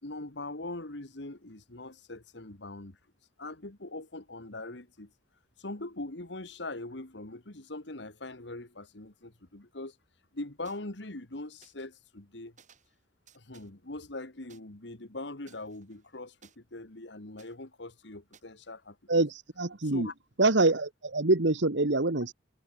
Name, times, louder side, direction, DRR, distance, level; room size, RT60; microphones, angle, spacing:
voice 1, 0.0-3.0 3.4-5.1 5.6-10.0 10.3-12.5 13.3-19.0 19.9-20.1, left 2 dB, 65° left, 2.1 m, -41 dB
sound 1, 10.6-10.8 11.6-11.7 12.6-13.0 13.3-13.7 14.5-14.6 15.5-16.6 17.4-17.5 18.3-18.4, right 7 dB, 40° right, 7.2 m, -59 dB
voice 2, 19.1-20.1 20.4-22.3, right 2 dB, 70° right, 1.5 m, -25 dB
head